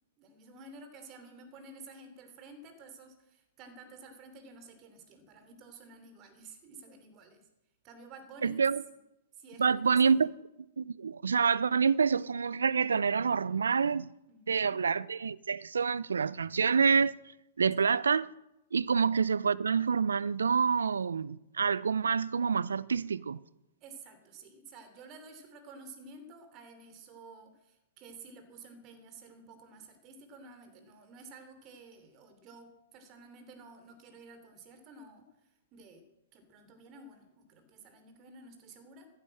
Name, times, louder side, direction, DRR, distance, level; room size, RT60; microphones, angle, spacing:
voice 1, 0.2-7.5 7.8-8.6 9.4-10.0 14.3-14.7 23.8-35.3 35.7-36.0 36.3-39.1, right 3 dB, 35° right, 3.0 m, -52 dB
voice 2, 8.4-8.8 9.6-10.3 10.8-14.1 14.5-17.2 17.6-18.3 18.7-23.4, right 5 dB, 75° right, 0.5 m, -27 dB
15.0 x 8.9 x 7.7 m
figure-of-eight pair, 105°, 0 cm